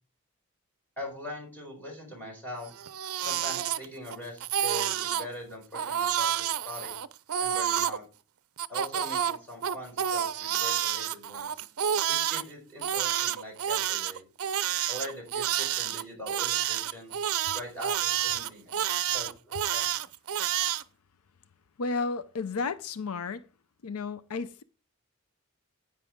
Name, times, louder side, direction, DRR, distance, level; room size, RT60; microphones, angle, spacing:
voice 1, 1.0-2.7 3.2-6.9 7.4-8.0 8.7-11.6 12.1-14.3 14.9-17.1 17.5-18.8 19.1-20.0, left 1 dB, 10° left, 4.8 m, -42 dB
Crying sobbing, 2.7-4.2 4.4-5.3 5.7-8.0 8.6-12.4 12.8-20.8, right 10 dB, 75° right, 0.5 m, -29 dB
voice 2, 21.8-23.4 23.8-24.6, left 4 dB, 80° left, 0.6 m, -32 dB
9.9 x 8.9 x 3.6 m
head